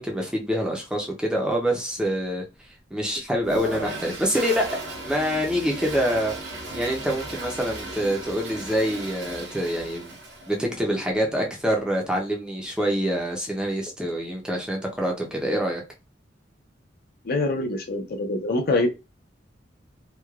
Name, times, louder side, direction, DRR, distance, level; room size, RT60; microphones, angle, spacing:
voice 1, 0.0-2.4 2.9-4.7 5.1-6.3 6.7-10.1 10.5-15.8, equal, 5° right, 0.5 m, -26 dB
Toilet flush, 3.4-10.7, right 1 dB, 65° right, 0.8 m, -36 dB
voice 2, 17.2-18.9, left 2 dB, 55° left, 0.5 m, -24 dB
3.0 x 2.2 x 2.3 m
head